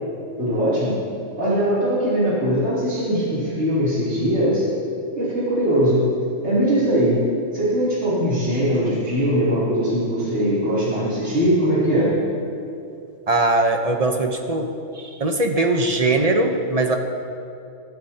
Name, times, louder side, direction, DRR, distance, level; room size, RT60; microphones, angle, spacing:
voice 1, 0.4-1.0 1.4-4.6 5.1-6.0 6.4-7.2 7.5-12.1, equal, 60° right, -10 dB, 3.4 m, -21 dB
voice 2, 13.3-14.7 14.9-17.0, right 2 dB, 30° right, 4 dB, 0.9 m, -20 dB
21.0 x 13.0 x 2.9 m, 2.6 s
omnidirectional pair, 1.3 m